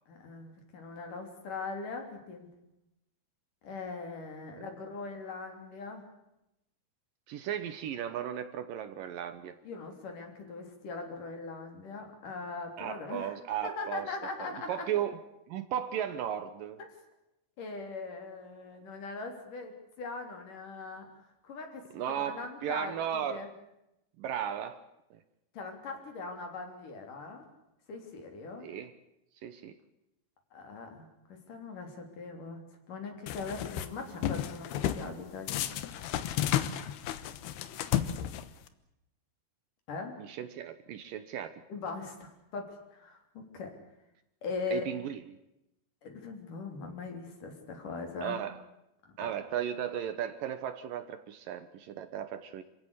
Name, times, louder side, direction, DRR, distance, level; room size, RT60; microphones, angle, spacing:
voice 1, 0.1-2.5 3.6-6.0 9.6-13.4 13.6-14.9 16.8-16.9 17.6-21.1 21.4-23.5 25.5-27.5 27.9-28.7 30.5-35.7 39.9-40.2 41.7-43.7 44.4-44.9 46.0-48.4 49.0-49.3, left 4 dB, 55° left, 4 dB, 4.8 m, -41 dB
voice 2, 7.3-9.5 12.8-15.2 15.5-16.8 21.9-23.5 24.2-24.8 25.1-25.2 28.6-28.9 29.4-29.8 40.2-41.6 44.7-45.2 48.2-48.6 49.2-52.6, right 9 dB, 70° right, 10 dB, 2.5 m, -36 dB
sound 1, 33.3-33.9 34.2-35.1 35.5-38.7, left 11 dB, 85° left, 3.1 m, -32 dB
27.5 x 16.5 x 8.3 m, 0.87 s
omnidirectional pair, 4.5 m